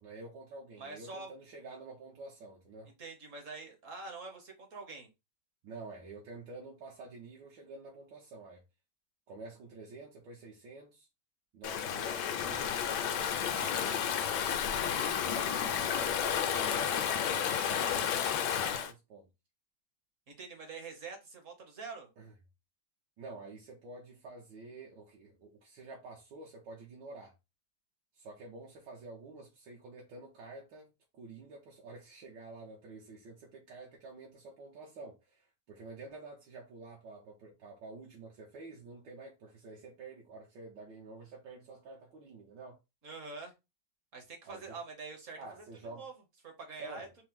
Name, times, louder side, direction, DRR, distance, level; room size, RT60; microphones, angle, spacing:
voice 1, 0.0-2.9 5.6-8.6 9.3-11.1 11.5-19.3 22.2-22.3 23.2-27.3 28.1-42.8 44.4-44.8 45.4-46.1 46.8-47.1, right 3 dB, 75° right, 1.6 m, -49 dB
voice 2, 0.8-1.3 3.0-5.1 20.3-22.1 43.0-43.5 44.1-45.4 45.9-46.1 46.4-47.1, right 4 dB, 50° right, 1.2 m, -45 dB
Stream / Ocean, 11.6-18.9, left 8 dB, 70° left, 1.2 m, -31 dB
4.7 x 2.1 x 3.5 m
omnidirectional pair, 2.0 m